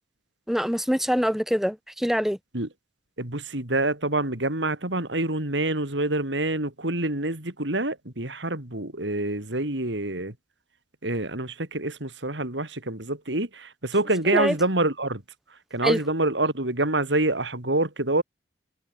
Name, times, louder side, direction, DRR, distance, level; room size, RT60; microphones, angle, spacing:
voice 1, 0.5-2.4 14.3-14.6 15.8-16.0, equal, ahead, 3.0 m, -24 dB
voice 2, 3.2-10.3 11.0-15.2 15.7-18.2, right 2 dB, 75° right, 4.1 m, -26 dB
head